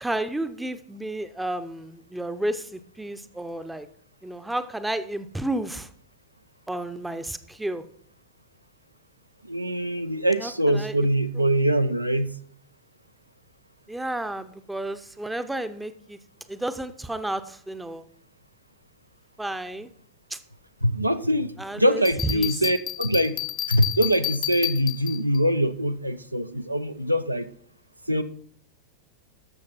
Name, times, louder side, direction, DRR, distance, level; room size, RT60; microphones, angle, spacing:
voice 1, 0.0-3.9 4.2-5.9 6.7-7.8 10.4-10.9 11.4-11.5 13.9-16.2 16.5-18.0 19.4-19.9 20.3-20.4 21.6-22.5, right 1 dB, 5° right, 11 dB, 0.7 m, -31 dB
voice 2, 9.5-12.3 20.8-23.4 23.7-27.5 28.1-28.2, equal, 90° right, 10 dB, 0.5 m, -23 dB
Bell, 22.0-25.4, left 11 dB, 35° left, 0.6 m, -31 dB
12.5 x 6.6 x 4.3 m, 0.62 s
figure-of-eight pair, 90°, 0 cm